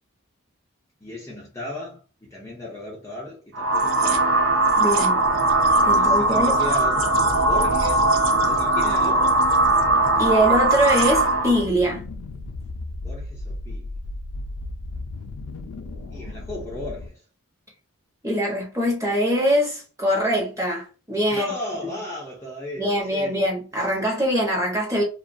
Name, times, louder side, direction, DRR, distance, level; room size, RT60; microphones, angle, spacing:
voice 1, 1.0-4.3 5.9-7.1 7.4-8.1 8.4-9.4 13.0-13.9 16.1-17.2 21.3-23.4, left 1 dB, 10° left, 0.4 m, -35 dB
sound 1, 3.5-11.6, right 2 dB, 70° right, 0.5 m, -19 dB
voice 2, 4.8-5.2 5.8-6.6 10.2-12.0 18.2-21.5 22.8-25.0, equal, 15° right, 0.8 m, -23 dB
sound 2, 9.5-17.1, left 2 dB, 85° left, 0.4 m, -35 dB
2.3 x 2.3 x 2.5 m
head